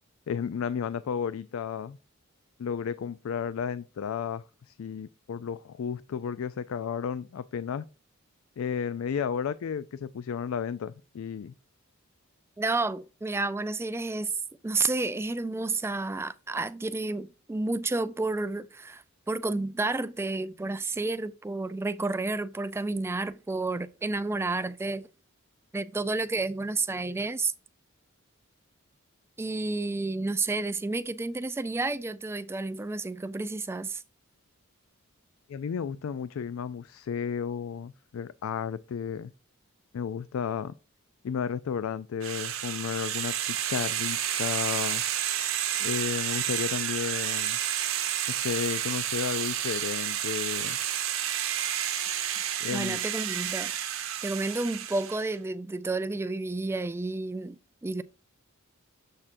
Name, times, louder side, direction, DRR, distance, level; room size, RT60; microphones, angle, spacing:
voice 1, 0.3-2.0 2.6-7.9 8.6-11.5 35.5-39.3 39.9-40.7 41.2-45.0 45.8-47.6 48.3-50.8 52.6-53.0, left 7 dB, 70° left, 0.3 m, -33 dB
voice 2, 12.6-14.3 14.6-25.1 25.7-27.5 29.4-34.0 52.7-53.7 54.2-57.6 57.8-58.0, right 3 dB, 10° right, 0.3 m, -31 dB
sound 1, 42.2-55.3, right 10 dB, 70° right, 1.0 m, -30 dB
7.3 x 6.5 x 2.5 m
head